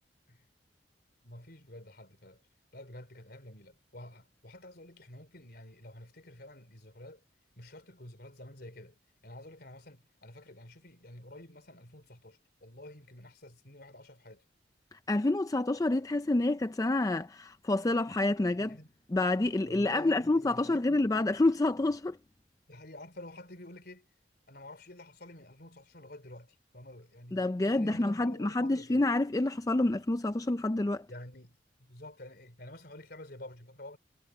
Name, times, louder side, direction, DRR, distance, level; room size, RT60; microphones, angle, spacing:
voice 1, 1.2-2.4 2.7-7.2 7.6-14.4 18.6-18.9 19.6-20.9 22.7-24.1 24.5-29.0 31.1-34.0, left 1 dB, 60° left, 3.9 m, -49 dB
voice 2, 15.1-18.8 19.1-22.2 27.3-31.1, left 2 dB, 20° left, 0.4 m, -28 dB
head